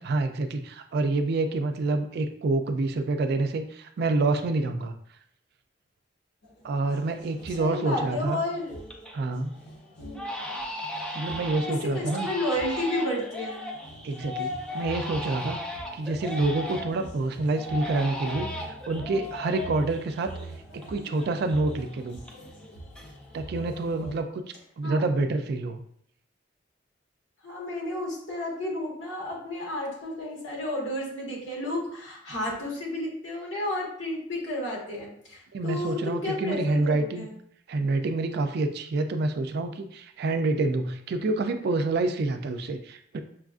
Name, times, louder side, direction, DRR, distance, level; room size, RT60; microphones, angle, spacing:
voice 1, 0.0-4.9 6.6-8.4 9.1-9.6 11.1-12.3 14.0-15.6 15.9-20.3 20.7-22.2 23.3-24.4 24.8-25.8 35.5-37.3 37.7-43.2, right 2 dB, 60° right, 8 dB, 0.4 m, -27 dB
sound 1, 6.4-24.2, right 2 dB, 60° left, 0.7 m, -45 dB
Crying sobbing, 7.0-7.1 7.5-8.0 8.4-9.2 9.5-9.7 10.1-17.1 17.5-20.9 21.1-22.7 22.9-23.5, left 1 dB, 5° left, 0.5 m, -36 dB
voice 2, 7.5-8.7 10.0-10.2 11.6-13.8 24.8-25.0 27.4-37.3, left 1 dB, 80° left, -3 dB, 1.4 m, -32 dB
6.0 x 2.4 x 2.4 m, 0.67 s
head